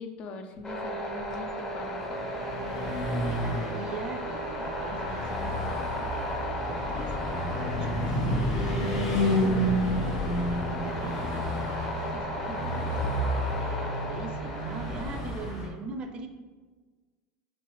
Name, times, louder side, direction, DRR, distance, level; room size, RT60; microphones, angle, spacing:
voice 1, 0.0-2.1, left 3 dB, 50° left, 5 dB, 0.5 m, -42 dB
sound 1, 0.6-15.2, equal, 25° left, 0.8 m, -35 dB
Car passing by / Truck, 1.3-15.7, equal, 70° left, 1.4 m, -30 dB
voice 2, 3.3-7.2 7.8-9.7 10.1-13.0 13.6-16.3, right 4 dB, 40° right, 7 dB, 0.5 m, -42 dB
5.3 x 2.4 x 3.1 m, 1.4 s
hypercardioid pair, 90°, 3 cm